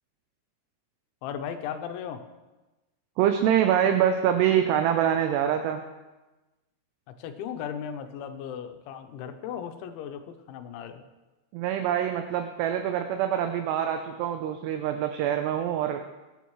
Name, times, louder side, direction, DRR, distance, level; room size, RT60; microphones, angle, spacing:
voice 1, 1.2-2.2 7.2-11.0, left 8 dB, 85° left, 7 dB, 3.2 m, -36 dB
voice 2, 3.2-5.8 11.5-16.1, right 9 dB, 80° right, 6 dB, 2.6 m, -25 dB
21.5 x 9.3 x 3.1 m, 1.1 s
omnidirectional pair, 5.3 m